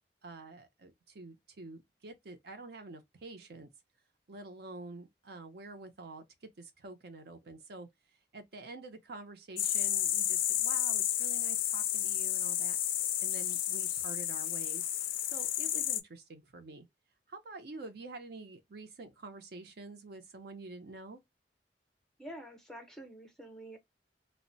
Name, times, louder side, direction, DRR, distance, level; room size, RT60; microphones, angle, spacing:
voice 1, 0.2-3.7 4.3-6.2 6.6-7.9 8.3-12.8 13.2-14.8 15.3-16.9 17.3-21.2, right 3 dB, 60° right, 0.6 m, -47 dB
sound 1, 9.6-16.0, left 12 dB, 50° left, 0.3 m, -31 dB
voice 2, 22.2-23.8, right 1 dB, 5° left, 0.6 m, -47 dB
2.1 x 2.0 x 3.8 m
head